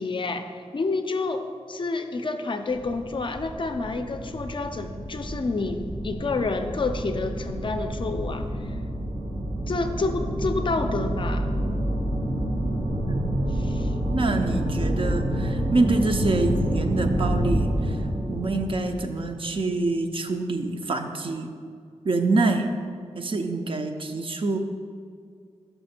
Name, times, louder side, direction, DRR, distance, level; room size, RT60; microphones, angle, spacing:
voice 1, 0.0-8.8 9.7-11.5 13.5-13.9, left 3 dB, 45° left, 7 dB, 0.4 m, -29 dB
sound 1, 2.7-19.7, right 1 dB, 80° right, 1.5 m, -28 dB
voice 2, 13.1-13.4 14.1-18.0 18.3-21.5 22.0-22.7 23.2-24.6, right 3 dB, 50° right, 5 dB, 0.5 m, -26 dB
5.9 x 5.6 x 4.3 m, 2.2 s
wide cardioid pair, 120°, 12 cm